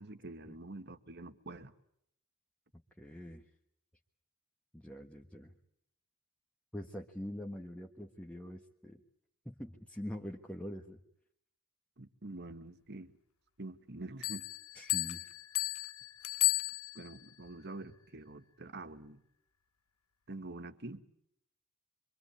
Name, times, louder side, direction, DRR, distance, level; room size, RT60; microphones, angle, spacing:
voice 1, 0.0-1.7 12.0-13.1 13.6-14.5 16.9-19.2 20.3-21.0, right 2 dB, 50° right, 1.6 m, -46 dB
voice 2, 3.0-3.4 4.7-5.5 6.7-9.0 9.4-11.0 14.7-15.3, equal, 5° left, 1.4 m, -44 dB
sound 1, 14.2-17.3, left 22 dB, 85° left, 1.0 m, -34 dB
25.5 x 25.0 x 8.5 m
head